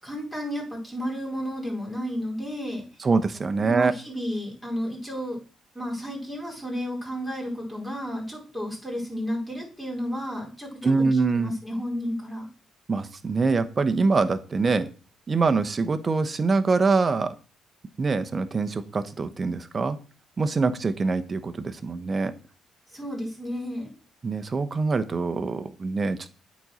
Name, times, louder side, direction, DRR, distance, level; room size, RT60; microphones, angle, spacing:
voice 1, 0.0-2.9 3.6-5.4 5.7-12.5 22.9-23.9, equal, ahead, -4 dB, 4.7 m, -32 dB
voice 2, 3.0-3.9 10.8-11.5 12.9-14.9 15.3-17.3 18.0-20.0 20.4-22.3 24.2-26.3, right 4 dB, 35° right, 9 dB, 0.9 m, -24 dB
8.8 x 4.2 x 6.2 m, 0.36 s
cardioid pair, 90°, 0 cm